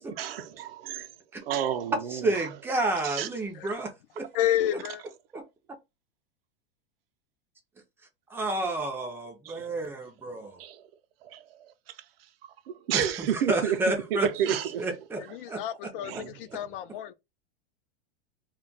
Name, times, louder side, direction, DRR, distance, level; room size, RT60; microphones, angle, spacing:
voice 1, 0.1-1.1 1.4-2.5 3.0-3.3 9.4-9.8 10.3-10.8 11.2-11.7 12.7-13.8 14.1-14.9 16.0-16.4, right 9 dB, 80° right, 0.5 m, -31 dB
voice 2, 2.1-4.3 4.7-4.8 5.3-5.4 8.3-10.6 12.9-15.2 15.5-15.6, right 2 dB, 10° right, 0.4 m, -30 dB
voice 3, 4.3-5.0 15.2-17.1, left 11 dB, 65° left, 0.5 m, -30 dB
2.2 x 2.2 x 3.8 m
supercardioid pair, 150°, 29 cm